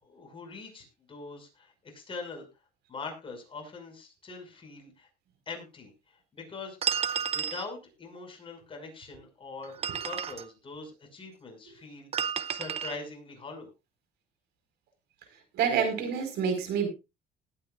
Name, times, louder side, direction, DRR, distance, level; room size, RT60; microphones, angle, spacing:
voice 1, 0.0-2.5 2.9-5.1 5.5-5.9 6.3-6.8 7.3-9.7 10.0-13.7, left 4 dB, 30° left, 3 dB, 5.9 m, -43 dB
sound 1, 6.8-7.7 9.6-10.5 12.1-13.0, right 8 dB, 35° right, 0.9 m, -31 dB
voice 2, 15.5-16.9, right 7 dB, 80° right, 6 dB, 4.8 m, -27 dB
20.0 x 9.0 x 2.5 m, 0.26 s
cardioid pair, 110°, 17 cm